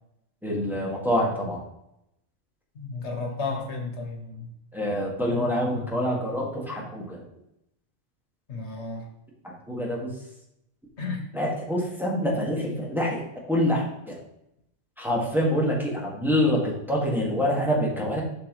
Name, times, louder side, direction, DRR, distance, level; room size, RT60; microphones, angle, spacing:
voice 1, 0.4-1.6 4.7-7.2 9.4-10.1 11.3-13.2 13.5-14.2 15.0-18.2, equal, ahead, -4 dB, 1.9 m, -26 dB
voice 2, 2.7-4.5 8.5-9.0 11.0-11.2, left 3 dB, 85° left, 2 dB, 1.7 m, -33 dB
8.0 x 6.1 x 3.2 m, 0.80 s
omnidirectional pair, 1.1 m